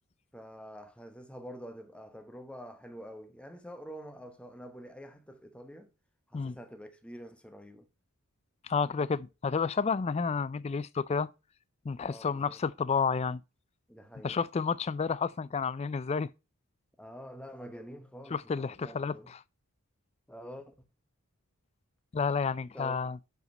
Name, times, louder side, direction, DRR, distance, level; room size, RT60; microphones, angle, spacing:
voice 1, 0.3-5.9 6.3-7.9 12.0-12.6 13.9-14.4 17.0-19.3 20.3-20.7 22.7-22.9, equal, 5° left, 0.9 m, -47 dB
voice 2, 8.6-11.3 11.8-13.4 14.2-16.3 18.3-19.4 22.1-23.2, left 5 dB, 30° left, 0.3 m, -30 dB
7.9 x 5.0 x 5.3 m
head